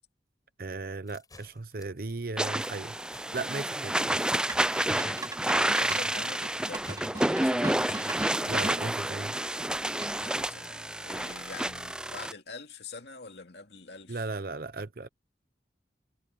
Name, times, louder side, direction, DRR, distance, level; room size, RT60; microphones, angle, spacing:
voice 1, 0.6-3.0 3.3-4.3 8.4-9.3 14.1-15.1, right 3 dB, 55° right, 0.8 m, -36 dB
sound 1, 1.1-12.3, left 4 dB, 20° left, 6.5 m, -56 dB
sound 2, 2.4-12.3, right 1 dB, 5° right, 0.4 m, -29 dB
sound 3, 4.5-8.8 10.0-10.4, right 2 dB, 20° right, 3.1 m, -40 dB
voice 2, 5.0-8.3 10.2-14.2, left 4 dB, 70° left, 2.4 m, -45 dB
head